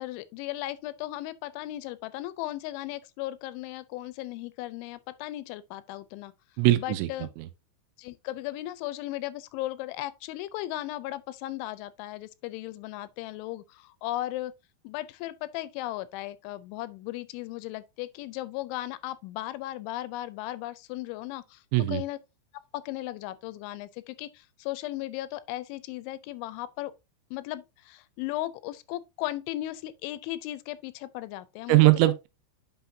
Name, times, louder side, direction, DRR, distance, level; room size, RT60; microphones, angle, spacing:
voice 1, 0.0-6.3 6.8-7.3 8.0-14.5 14.8-22.2 22.7-26.9 27.3-31.9, left 16 dB, 85° left, 3.0 m, -36 dB
voice 2, 6.6-7.1 7.4-7.5 21.7-22.0 31.7-32.3, right 17 dB, 85° right, 3.0 m, -21 dB
8.9 x 5.8 x 2.7 m
omnidirectional pair, 5.4 m